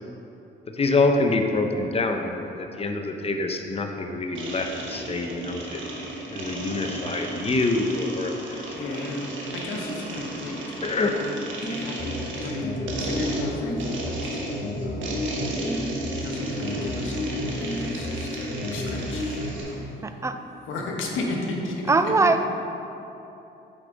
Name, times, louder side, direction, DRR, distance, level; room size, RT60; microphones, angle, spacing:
voice 1, 0.7-5.8 6.3-9.0 10.8-11.4, left 3 dB, 30° left, 4 dB, 0.7 m, -26 dB
sound 1, 4.3-19.7, right 2 dB, 75° right, 1.2 m, -34 dB
voice 2, 8.7-10.8 11.0-14.5 14.8-15.9 16.2-19.4 19.7-20.2 20.6-22.1, left 2 dB, 80° left, 0 dB, 1.2 m, -34 dB
sound 2, 11.6-19.6, left 1 dB, 45° left, 1.7 m, -32 dB
voice 3, 20.0-20.4 21.9-22.4, right 3 dB, 15° right, 8 dB, 0.4 m, -21 dB
8.4 x 5.0 x 3.8 m, 3.0 s
cardioid pair, 90°, 20 cm